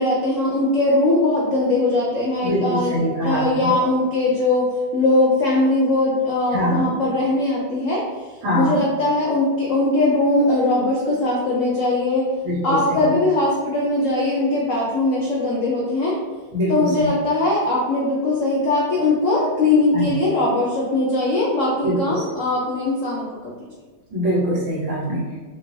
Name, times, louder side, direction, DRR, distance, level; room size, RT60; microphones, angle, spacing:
voice 1, 0.0-8.3 8.5-12.3 12.6-16.2 16.7-23.5, left 2 dB, 75° left, -4 dB, 0.7 m, -20 dB
voice 2, 2.4-3.7 6.5-6.9 8.4-8.8 12.4-13.1 16.5-17.1 19.9-20.1 21.8-22.2 24.1-25.3, equal, 70° right, -6 dB, 2.1 m, -23 dB
5.7 x 2.6 x 3.2 m, 1.3 s
omnidirectional pair, 2.2 m